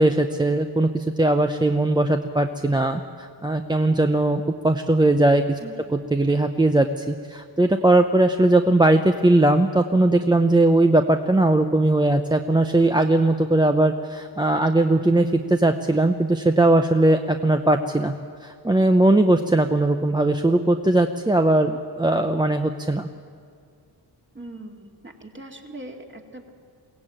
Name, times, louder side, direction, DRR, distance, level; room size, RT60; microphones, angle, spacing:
voice 1, 0.0-5.6 6.1-18.1 18.4-23.1, right 2 dB, 10° right, 6 dB, 0.7 m, -19 dB
voice 2, 24.3-26.5, right 1 dB, 25° right, 3 dB, 2.3 m, -40 dB
22.5 x 16.5 x 8.9 m, 2.2 s
wide cardioid pair, 120°, 42 cm